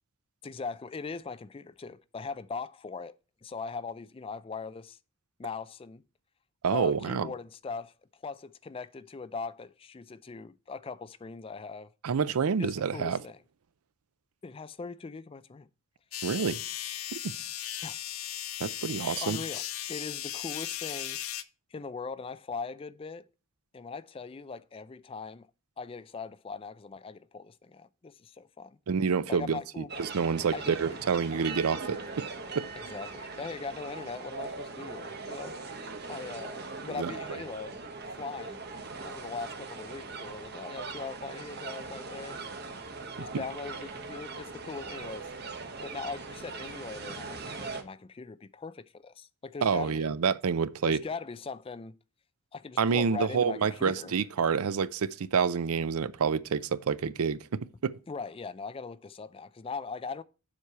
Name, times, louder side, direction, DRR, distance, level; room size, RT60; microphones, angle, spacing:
voice 1, 0.4-3.1 3.4-5.0 5.4-6.0 6.7-11.9 12.6-13.4 14.4-15.7 17.8-18.0 19.1-19.6 19.9-21.2 21.7-23.3 23.7-25.5 25.8-28.8 29.3-29.9 30.5-31.0 32.8-35.5 36.1-38.6 39.0-42.4 43.2-45.3 45.8-50.1 50.9-52.0 52.5-54.1 58.1-60.2, left 4 dB, 25° left, 0.3 m, -40 dB
voice 2, 6.6-7.3 12.0-13.2 16.2-16.6 17.1-17.3 18.6-19.4 28.9-32.2 32.6-32.7 37.0-37.1 43.3-43.4 49.6-51.0 52.8-58.0, right 6 dB, 80° right, 0.5 m, -28 dB
sound 1, 16.1-21.4, left 12 dB, 70° left, 0.6 m, -37 dB
sound 2, 29.9-47.8, right 4 dB, 45° right, 1.0 m, -40 dB
7.4 x 4.7 x 6.7 m
head